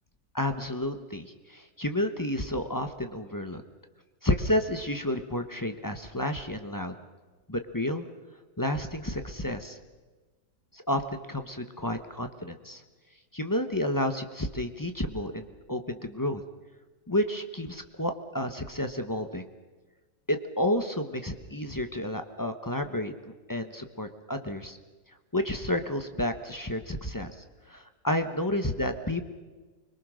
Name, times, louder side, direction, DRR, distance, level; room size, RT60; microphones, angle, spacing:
voice 1, 0.3-3.6 4.2-7.0 7.5-8.0 8.6-9.8 10.7-12.8 13.3-16.4 17.1-19.4 20.3-24.8 25.3-27.3 27.7-29.2, left 1 dB, 15° left, 7 dB, 0.7 m, -31 dB
25.0 x 22.5 x 6.4 m, 1.3 s
omnidirectional pair, 2.1 m